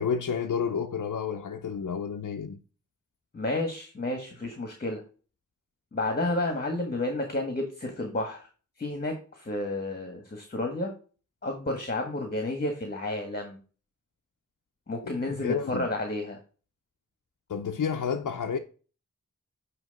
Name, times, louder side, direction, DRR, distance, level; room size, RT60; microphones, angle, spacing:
voice 1, 0.0-2.6 15.0-15.9 17.5-18.6, left 6 dB, 70° left, 0.7 m, -30 dB
voice 2, 3.3-5.0 5.9-8.5 8.8-10.9 11.4-13.6 14.9-16.4, left 2 dB, 30° left, 1.5 m, -31 dB
9.2 x 3.1 x 5.2 m
wide cardioid pair, 85°, 32 cm